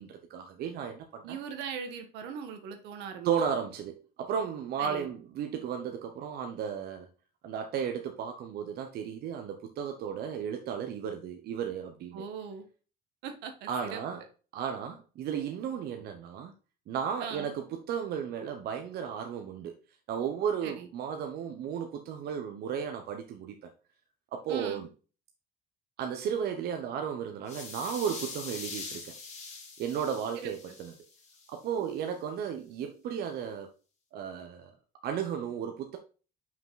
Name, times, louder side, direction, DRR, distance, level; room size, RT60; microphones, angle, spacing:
voice 1, 0.0-1.4 3.2-7.1 7.4-12.2 13.7-14.2 14.5-16.5 16.9-19.8 20.1-23.7 24.3-24.9 26.0-29.1 29.8-30.9 31.5-33.7 34.1-34.7 35.0-36.0, right 8 dB, 70° right, 0.9 m, -34 dB
voice 2, 1.2-3.3 4.8-5.1 12.1-12.7 13.2-14.0 17.2-17.5 20.6-20.9 24.5-24.9 30.4-30.5, right 7 dB, 90° right, 1.4 m, -40 dB
sound 1, 27.5-31.5, left 4 dB, 40° left, 2.6 m, -43 dB
5.9 x 5.0 x 3.8 m
cardioid pair, 110°, 17 cm